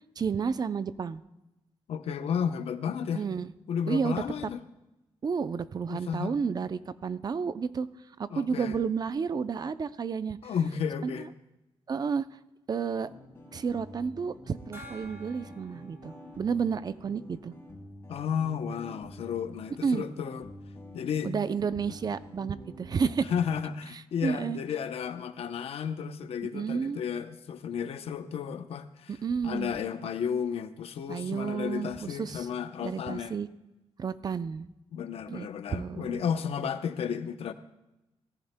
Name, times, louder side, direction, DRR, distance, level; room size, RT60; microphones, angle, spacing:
voice 1, 0.2-1.2 3.1-3.5 3.9-4.2 5.2-7.9 8.2-10.4 11.0-11.3 11.9-12.3 12.7-13.1 13.5-17.5 19.8-20.0 21.2-23.3 24.2-24.6 26.5-27.0 29.1-29.7 31.1-32.5 32.8-33.5 34.0-34.7 35.3-36.2, right 6 dB, 40° right, 14 dB, 0.5 m, -31 dB
voice 2, 1.9-3.3 3.7-4.6 5.9-6.3 8.3-8.8 10.4-11.3 18.1-20.5 20.9-21.3 21.9-22.0 23.3-29.1 29.4-33.3 34.9-37.5, left 7 dB, 70° left, 10 dB, 0.7 m, -33 dB
sound 1, 13.0-23.7, left 1 dB, 20° left, 3.6 m, -48 dB
Gong, 14.7-18.0, left 1 dB, 25° right, 3.0 m, -52 dB
18.0 x 14.5 x 2.2 m, 0.96 s
cardioid pair, 110°, 10 cm